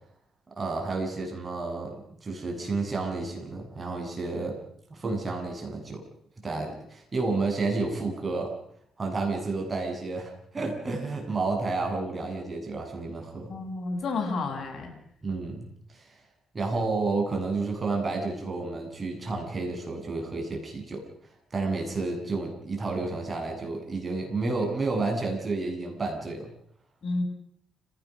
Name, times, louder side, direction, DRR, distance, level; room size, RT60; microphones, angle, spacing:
voice 1, 0.6-1.9 2.2-4.6 4.9-6.0 6.4-8.5 9.0-13.5 15.2-15.7 15.9-16.1 16.5-21.0 21.5-26.5, right 3 dB, 30° right, 1 dB, 7.9 m, -30 dB
voice 2, 13.5-14.9 27.0-27.2, left 3 dB, 50° left, 2 dB, 7.2 m, -30 dB
29.5 x 17.5 x 6.3 m, 0.68 s
cardioid pair, 90°, 0 cm